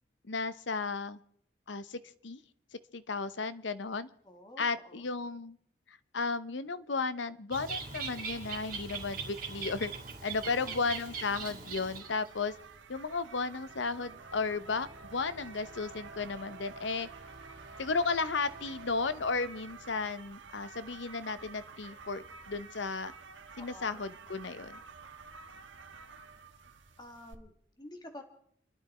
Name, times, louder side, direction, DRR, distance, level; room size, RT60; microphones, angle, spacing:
voice 1, 0.3-1.2 1.7-2.4 2.9-4.1 4.6-5.6 5.9-9.9 10.2-12.5 12.9-17.1 17.8-23.1 23.6-24.8, left 4 dB, 75° left, 14 dB, 0.8 m, -34 dB
voice 2, 4.2-5.1 10.4-10.9 23.5-24.0 27.0-28.2, left 1 dB, 20° left, 5 dB, 1.7 m, -50 dB
Bird, 7.5-12.3, right 5 dB, 50° right, 3.4 m, -40 dB
sound 1, 10.3-27.3, right 4 dB, 85° right, 1.4 m, -52 dB
sound 2, 13.0-20.7, right 3 dB, 65° right, 2.9 m, -52 dB
29.5 x 11.5 x 4.3 m, 0.68 s
head